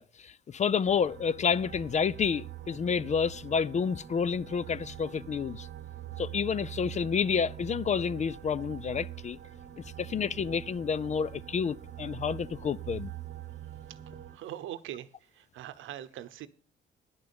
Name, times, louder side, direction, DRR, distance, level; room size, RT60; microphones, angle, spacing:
voice 1, 0.0-5.7 6.2-9.4 10.0-13.1, left 6 dB, 35° left, 0.4 m, -29 dB
sound 1, 0.8-14.4, right 12 dB, 55° right, 0.9 m, -44 dB
voice 2, 13.6-16.5, right 12 dB, 85° right, 0.9 m, -43 dB
10.5 x 6.6 x 7.0 m
cardioid pair, 90°, 20 cm